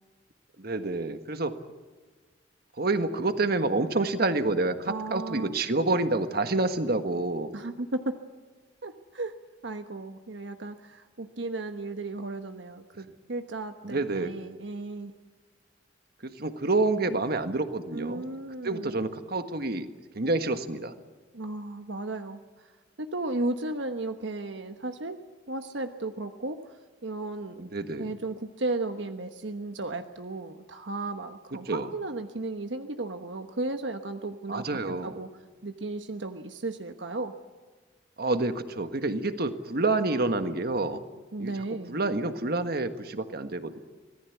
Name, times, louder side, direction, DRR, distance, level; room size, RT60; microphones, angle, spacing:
voice 1, 0.6-1.6 2.8-7.5 13.8-14.3 16.2-18.2 18.6-19.9 20.1-20.9 27.6-28.1 31.7-31.9 34.5-35.2 38.2-41.0 41.4-41.5 41.9-43.8, right 2 dB, 55° right, 9 dB, 1.6 m, -28 dB
voice 2, 4.9-5.6 7.5-8.2 8.8-9.3 9.6-15.1 17.9-19.0 21.3-22.7 23.0-27.7 28.0-35.3 35.6-37.3 41.3-42.0, right 2 dB, 75° right, 7 dB, 1.1 m, -35 dB
25.5 x 18.5 x 8.3 m, 1.4 s
head